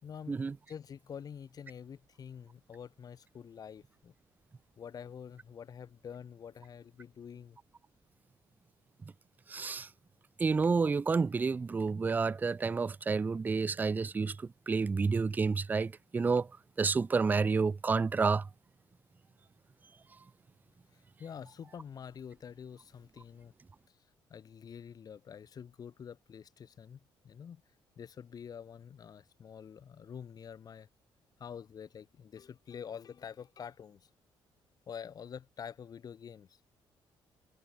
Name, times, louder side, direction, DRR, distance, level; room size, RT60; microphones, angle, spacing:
voice 1, 0.0-0.4 0.7-4.1 4.8-7.6 20.9-23.5 24.3-27.0 27.2-27.6 28.0-30.9 31.4-34.1 34.9-36.6, left 7 dB, 45° left, 4.8 m, -47 dB
voice 2, 9.5-9.9 10.4-14.4 14.7-16.5 16.8-18.4, right 4 dB, 20° right, 0.4 m, -29 dB
cardioid pair, 115°, 9 cm